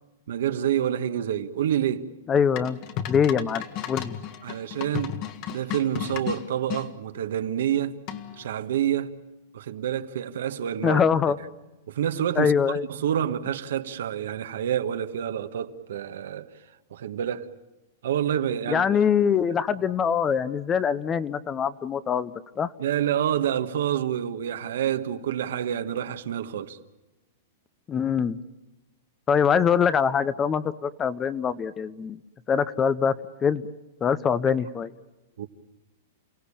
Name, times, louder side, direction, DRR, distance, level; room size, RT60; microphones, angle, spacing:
voice 1, 0.3-2.1 4.4-5.2 5.5-8.0 8.4-9.1 9.5-11.0 11.9-12.5 12.9-16.5 16.9-17.5 18.0-18.8 22.8-26.8 35.4-35.5, right 10 dB, 75° right, 1.5 m, -28 dB
voice 2, 2.3-2.8 3.1-4.2 10.8-11.4 12.4-12.9 18.7-22.7 27.9-28.4 29.3-32.2 32.5-33.1 33.4-33.7 34.0-34.9, left 7 dB, 20° left, 0.8 m, -23 dB
sound 1, 2.6-6.9 8.1-8.5, left 10 dB, 40° left, 1.7 m, -34 dB
29.5 x 17.0 x 8.6 m
hypercardioid pair, 150°, 0 cm